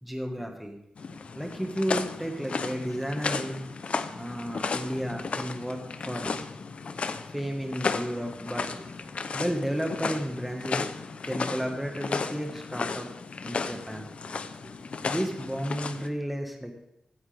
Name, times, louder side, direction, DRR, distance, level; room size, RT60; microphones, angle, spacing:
voice 1, 0.0-0.8 1.4-6.4 7.3-8.9 9.3-10.9 11.2-13.1 13.4-14.1 15.1-16.8, equal, 5° right, 2 dB, 1.7 m, -33 dB
sound 1, 1.0-16.1, left 4 dB, 60° left, 0.7 m, -34 dB
16.0 x 9.4 x 3.5 m, 0.84 s
wide cardioid pair, 100°, 2 cm